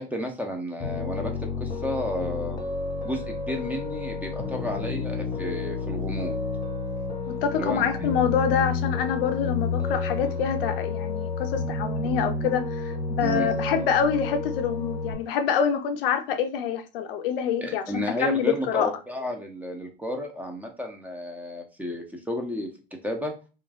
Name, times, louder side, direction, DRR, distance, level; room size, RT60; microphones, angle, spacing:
voice 1, 0.0-1.3 1.6-2.6 3.0-6.4 7.6-8.0 13.2-13.5 17.6-22.7 23.0-23.3, equal, 5° right, 0.6 m, -32 dB
Piano, 0.8-15.2, left 3 dB, 15° left, 1.0 m, -30 dB
voice 2, 7.3-18.9, left 7 dB, 70° left, 0.5 m, -26 dB
3.0 x 2.4 x 2.2 m
hypercardioid pair, 85°, 29 cm